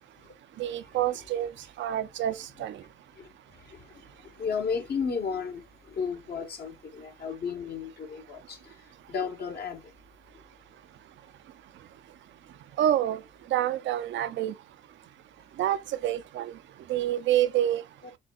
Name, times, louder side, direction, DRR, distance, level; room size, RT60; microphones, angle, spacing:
voice 1, 0.6-1.5 1.8-2.8 12.8-13.2 13.5-14.5 15.6-16.5 16.9-17.8, right 12 dB, 70° right, 0.5 m, -27 dB
voice 2, 4.4-5.6 5.9-8.7 9.1-9.8, left 6 dB, 55° left, 1.1 m, -33 dB
6.2 x 2.2 x 2.4 m
cardioid pair, 90°, 20 cm